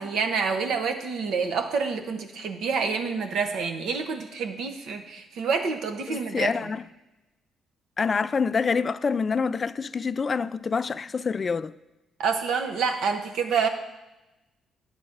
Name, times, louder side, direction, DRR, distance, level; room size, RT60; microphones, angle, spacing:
voice 1, 0.0-6.7 12.2-13.7, right 5 dB, 80° right, 1.0 m, -27 dB
voice 2, 6.1-6.8 8.0-11.7, left 5 dB, 35° left, 0.3 m, -26 dB
10.0 x 4.0 x 7.1 m
cardioid pair, 90°, 0 cm